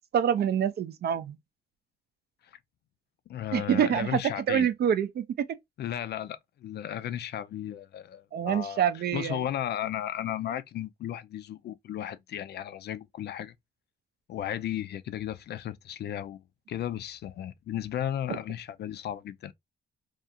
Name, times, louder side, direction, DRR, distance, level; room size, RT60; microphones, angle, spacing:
voice 1, 0.1-1.4 3.5-5.3 8.3-9.4 18.3-18.4, right 9 dB, 55° right, 0.4 m, -26 dB
voice 2, 3.3-4.7 5.8-8.8 9.1-13.5 14.3-16.4 16.7-19.5, left 11 dB, 55° left, 0.4 m, -35 dB
2.4 x 2.4 x 2.7 m
cardioid pair, 90°, 20 cm